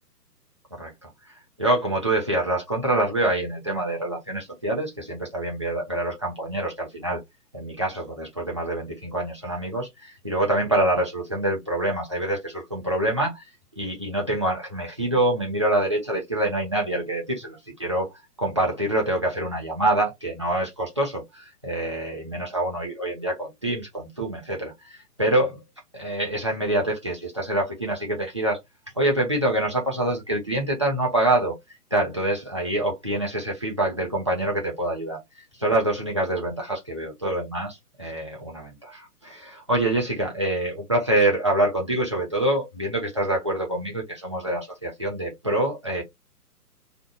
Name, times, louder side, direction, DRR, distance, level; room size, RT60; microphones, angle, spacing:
voice 1, 0.8-7.2 7.5-13.5 13.8-18.1 18.4-25.6 25.9-28.6 29.0-31.6 31.9-35.2 35.6-46.0, right 1 dB, 20° right, 0.5 m, -26 dB
2.5 x 2.3 x 4.0 m
figure-of-eight pair, 135°, 47 cm